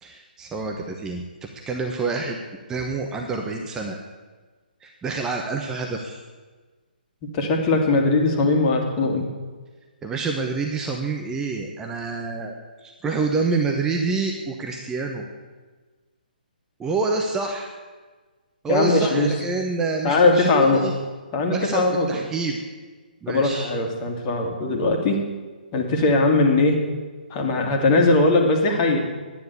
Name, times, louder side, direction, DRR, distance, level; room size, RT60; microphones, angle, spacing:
voice 1, 0.0-2.4 2.7-4.0 4.8-6.2 10.0-12.5 12.8-15.3 16.8-17.7 18.6-20.9 21.5-22.6 23.2-23.7, right 4 dB, 10° right, 2 dB, 1.0 m, -27 dB
voice 2, 7.3-9.3 18.7-19.3 20.0-20.8 21.3-22.2 23.3-25.2 25.7-26.8 27.3-29.0, left 3 dB, 25° left, 2 dB, 2.3 m, -20 dB
11.5 x 9.9 x 8.4 m, 1.4 s
figure-of-eight pair, 135°, 5 cm